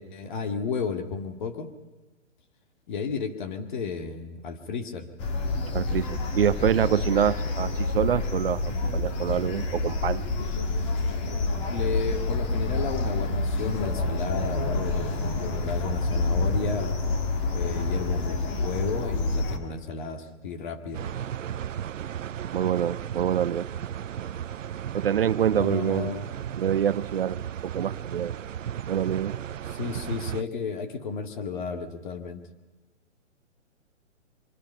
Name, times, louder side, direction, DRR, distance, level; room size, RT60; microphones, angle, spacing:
voice 1, 0.0-1.7 2.9-5.1 11.7-17.0 17.5-21.0 25.5-26.3 29.7-32.4, left 5 dB, 40° left, 7 dB, 2.3 m, -33 dB
sound 1, 5.2-19.6, left 2 dB, 25° left, 1.9 m, -28 dB
voice 2, 5.7-10.2 22.5-23.7 24.9-26.1 26.6-28.4 28.9-29.4, right 9 dB, 50° right, 15 dB, 0.7 m, -26 dB
sound 2, 20.9-30.4, right 9 dB, 90° right, 0.7 m, -35 dB
24.5 x 22.5 x 5.7 m, 1.2 s
hypercardioid pair, 165°, 37 cm